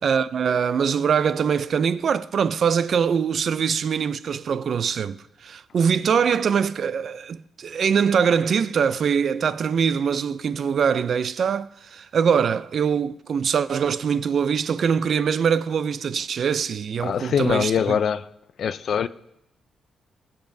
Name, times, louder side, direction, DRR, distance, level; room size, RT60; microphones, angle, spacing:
voice 1, 0.0-18.0, right 7 dB, 50° right, 0.3 m, -23 dB
voice 2, 17.0-18.3 18.6-19.1, left 7 dB, 55° left, 0.4 m, -23 dB
20.5 x 7.1 x 2.6 m
cardioid pair, 145°, 0 cm